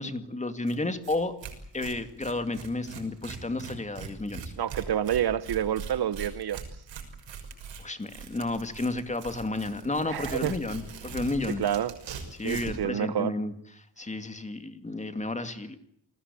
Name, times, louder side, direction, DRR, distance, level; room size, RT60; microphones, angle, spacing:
voice 1, 0.0-1.3 1.7-4.4 7.8-11.6 12.3-13.5 14.0-15.8, left 2 dB, 15° left, 2.3 m, -32 dB
Tearing, 0.7-0.8 1.0-1.2 1.4-12.8, right 6 dB, 80° right, 6.2 m, -41 dB
voice 2, 4.6-6.6 10.1-10.5 11.6-11.9 12.4-13.3, right 10 dB, 60° right, 1.2 m, -28 dB
29.0 x 20.5 x 8.5 m
wide cardioid pair, 170°, 44 cm